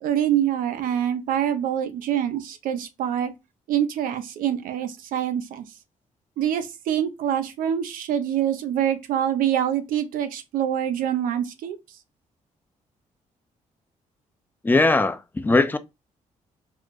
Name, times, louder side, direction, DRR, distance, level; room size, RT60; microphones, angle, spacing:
voice 1, 0.0-3.3 3.7-5.6 6.4-11.8, right 10 dB, 85° right, 0.5 m, -25 dB
voice 2, 14.6-15.8, left 3 dB, 15° left, 0.4 m, -20 dB
4.6 x 2.1 x 2.3 m
cardioid pair, 75°, 14 cm